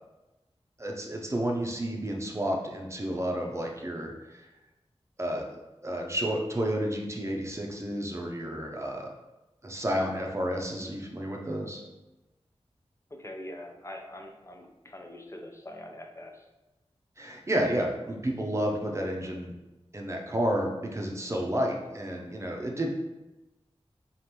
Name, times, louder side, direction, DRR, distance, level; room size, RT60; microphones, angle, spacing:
voice 1, 0.8-4.5 5.2-9.1 9.6-11.8 17.2-19.5 19.9-22.9, right 1 dB, 25° right, 0 dB, 0.6 m, -31 dB
voice 2, 13.1-16.5, left 1 dB, 25° left, 3 dB, 0.5 m, -43 dB
5.0 x 2.5 x 3.0 m, 1.0 s
wide cardioid pair, 75°, 11 cm